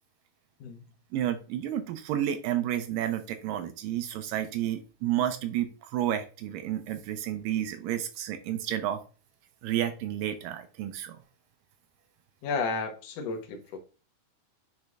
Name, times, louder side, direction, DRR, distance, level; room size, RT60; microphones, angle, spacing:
voice 1, 1.1-9.0 9.6-11.2, right 11 dB, 80° right, 2.1 m, -31 dB
voice 2, 12.4-13.8, left 4 dB, 65° left, 1.7 m, -32 dB
9.6 x 4.4 x 2.4 m
omnidirectional pair, 4.3 m